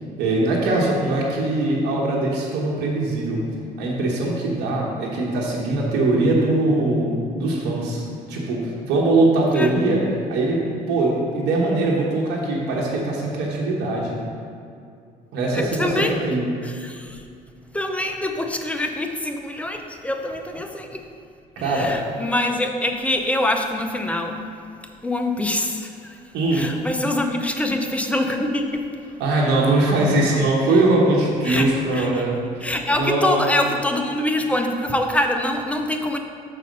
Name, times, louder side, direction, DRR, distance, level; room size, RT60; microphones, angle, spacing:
voice 1, 0.2-3.4 3.8-8.0 8.3-10.0 10.3-14.2 15.3-16.5 21.6-21.9 26.3-26.7 29.2-32.4 33.0-33.4, right 2 dB, 80° right, -4 dB, 1.2 m, -21 dB
voice 2, 15.5-16.2 16.6-17.2 17.7-21.0 21.6-24.5 25.0-26.2 26.5-28.9 31.4-32.2 32.6-36.2, left 1 dB, 10° left, 4 dB, 0.5 m, -25 dB
6.4 x 4.2 x 5.3 m, 2.4 s
cardioid pair, 110°, 17 cm